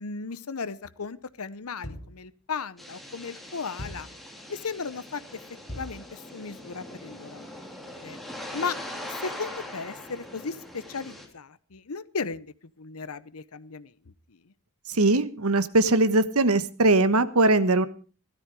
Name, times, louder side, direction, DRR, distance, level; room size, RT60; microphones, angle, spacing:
voice 1, 0.0-4.1 4.5-5.2 5.7-7.5 8.0-8.2 8.5-8.8 9.2-13.9, left 5 dB, 85° left, 15 dB, 0.9 m, -36 dB
sound 1, 1.8-2.3 3.8-4.2 5.7-6.1, equal, 50° left, 3.2 m, -39 dB
sound 2, 2.8-11.3, left 1 dB, ahead, 3.3 m, -41 dB
voice 2, 14.9-17.9, right 2 dB, 85° right, 13 dB, 1.3 m, -21 dB
16.5 x 13.0 x 4.8 m, 0.37 s
head